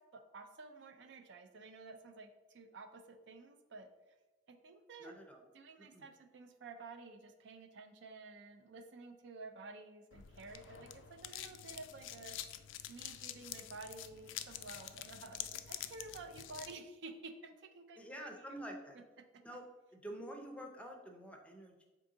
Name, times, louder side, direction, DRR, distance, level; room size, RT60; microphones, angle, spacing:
voice 1, 0.1-3.9 4.5-5.1 5.5-12.4 12.9-18.6, right 3 dB, 65° right, 6 dB, 0.4 m, -52 dB
voice 2, 5.0-5.4 5.8-6.0 18.0-19.0 19.4-19.6 19.9-21.9, right 1 dB, 5° left, 3 dB, 0.5 m, -48 dB
sound 1, 10.1-16.7, left 11 dB, 80° left, 0.3 m, -47 dB
3.8 x 3.5 x 3.8 m, 1.2 s
head